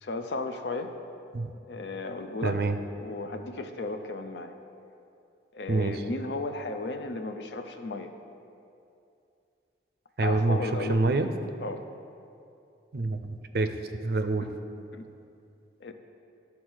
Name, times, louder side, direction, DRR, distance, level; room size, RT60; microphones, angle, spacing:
voice 1, 0.0-0.9 1.7-2.6 3.0-4.5 5.5-8.1 10.2-11.0 11.6-11.8 14.4-14.5 14.9-15.1 15.8-15.9, left 3 dB, 80° left, 7 dB, 0.6 m, -34 dB
voice 2, 2.4-2.8 5.7-6.0 10.2-11.3 12.9-13.7 14.0-14.5, right 3 dB, 60° right, 8 dB, 0.5 m, -26 dB
10.5 x 4.1 x 6.2 m, 2.6 s
head